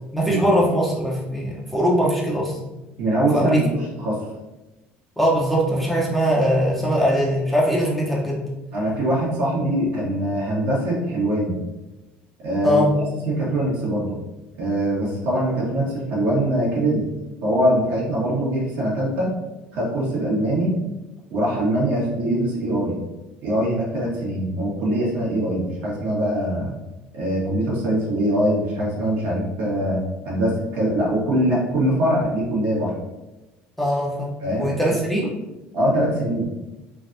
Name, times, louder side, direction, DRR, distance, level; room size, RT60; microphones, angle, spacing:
voice 1, 0.1-2.6 3.3-3.7 5.2-8.4 12.6-13.0 33.8-35.4, equal, 5° left, -5 dB, 0.7 m, -21 dB
voice 2, 3.0-4.2 8.7-11.6 12.4-12.8 13.3-14.1 14.6-17.0 17.4-19.3 19.7-20.7 21.3-23.0 23.4-26.7 27.1-30.0 30.2-32.9 34.4-34.7 35.7-36.5, right 1 dB, 70° right, -5 dB, 1.4 m, -22 dB
3.3 x 2.3 x 2.6 m, 1.0 s
cardioid pair, 115°, 4 cm